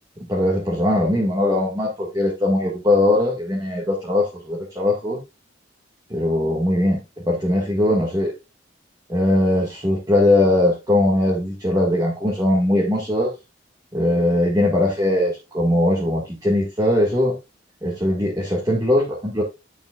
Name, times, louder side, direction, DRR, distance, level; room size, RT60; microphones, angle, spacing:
voice 1, 0.3-5.2 6.1-8.3 9.1-13.3 13.9-17.3 17.8-19.4, left 1 dB, 20° right, -4 dB, 1.8 m, -20 dB
9.2 x 7.1 x 2.4 m, 0.24 s
head